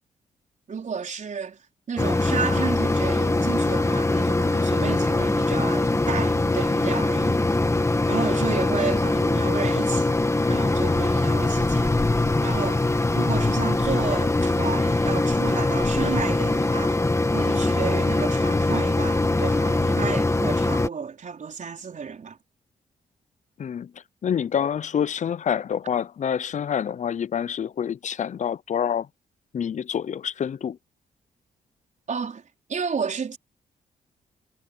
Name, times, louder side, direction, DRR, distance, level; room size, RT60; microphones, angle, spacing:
voice 1, 0.7-7.4 8.1-10.2 10.5-12.8 13.1-17.0 17.3-22.4 32.1-32.4 32.7-33.4, right 6 dB, 55° right, 4.7 m, -32 dB
Mechanisms, 2.0-20.9, left 2 dB, 20° left, 1.9 m, -22 dB
voice 2, 23.6-23.9 24.2-29.1 29.5-30.8, left 8 dB, 50° left, 0.6 m, -27 dB
cardioid pair, 60°, 15 cm